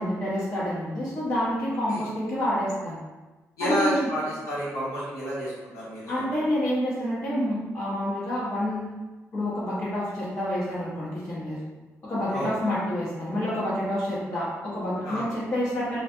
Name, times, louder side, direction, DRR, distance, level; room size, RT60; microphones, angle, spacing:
voice 1, 0.0-3.0 3.6-4.1 6.1-8.9 9.3-11.6 12.0-16.0, left 1 dB, 45° left, -12 dB, 0.9 m, -28 dB
voice 2, 3.6-6.4 12.3-12.5 15.0-15.3, right 1 dB, 80° left, -9 dB, 1.2 m, -30 dB
2.4 x 2.3 x 2.5 m, 1.2 s
cardioid pair, 80°, 6 cm